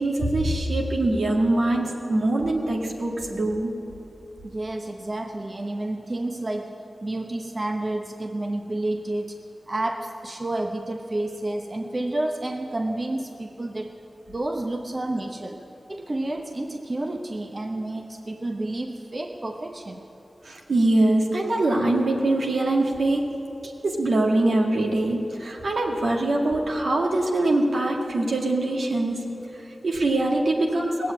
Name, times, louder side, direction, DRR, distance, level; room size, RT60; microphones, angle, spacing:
voice 1, 0.0-3.8 20.4-23.4 23.8-31.1, right 2 dB, 80° right, -1 dB, 1.9 m, -23 dB
voice 2, 4.4-9.4 9.7-13.9 14.3-15.6 15.9-20.0, right 1 dB, 40° right, 2 dB, 0.9 m, -30 dB
18.5 x 7.7 x 8.7 m, 3.0 s
wide cardioid pair, 60°, 0 cm